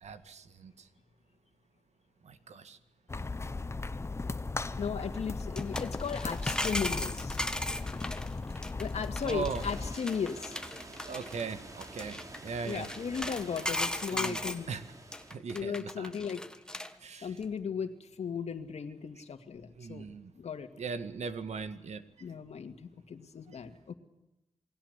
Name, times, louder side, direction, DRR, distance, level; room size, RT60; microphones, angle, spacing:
voice 1, 0.0-0.7 2.3-2.8 9.3-9.6 11.1-12.2 12.4-12.9 14.1-14.4 14.7-14.8 15.3-16.1 17.0-17.3 19.8-20.3 20.8-22.0, right 5 dB, 75° right, 10 dB, 1.9 m, -38 dB
sound 1, 3.1-9.9, left 3 dB, 25° left, 0.8 m, -37 dB
voice 2, 4.8-7.4 8.8-10.6 12.6-14.7 15.5-16.4 17.2-17.9 18.2-20.1 20.4-20.7 22.2-23.9, left 6 dB, 70° left, 8 dB, 2.2 m, -36 dB
sound 2, 5.4-14.6 15.1-16.9 17.2-17.4, left 1 dB, 5° left, 1.5 m, -37 dB
sound 3, 9.5-15.3, right 2 dB, 30° right, 3.3 m, -48 dB
28.5 x 20.5 x 8.3 m, 0.96 s
wide cardioid pair, 140°, 11 cm